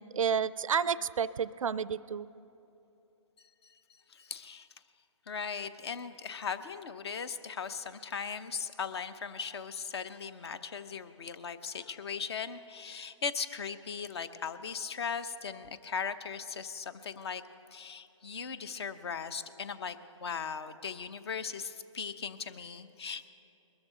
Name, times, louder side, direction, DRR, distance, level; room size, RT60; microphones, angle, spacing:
voice 1, 0.0-2.3, right 7 dB, 85° right, 18 dB, 0.4 m, -30 dB
voice 2, 4.1-4.7 5.3-17.4 17.7-23.3, left 6 dB, 50° left, 12 dB, 0.8 m, -38 dB
22.0 x 13.5 x 3.9 m, 2.9 s
hypercardioid pair, 150°, 17 cm